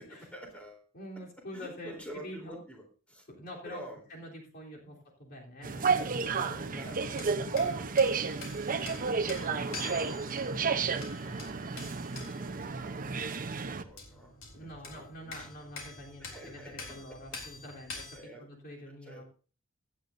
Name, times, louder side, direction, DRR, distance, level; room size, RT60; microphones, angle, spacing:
voice 1, 0.0-0.9 1.5-3.3 3.6-4.0 4.8-5.0 6.4-8.4 8.9-15.5 16.2-17.2 18.1-18.4 19.0-19.2, equal, 5° left, 1 dB, 3.6 m, -49 dB
voice 2, 0.9-2.6 3.3-3.8 4.1-7.1 8.7-8.9 14.5-19.2, equal, 50° left, -2 dB, 3.5 m, -46 dB
sound 1, 5.6-18.2, left 3 dB, 65° left, 3.7 m, -47 dB
sound 2, 5.6-13.8, right 5 dB, 40° right, 0.8 m, -31 dB
16.5 x 11.0 x 2.7 m, 0.36 s
head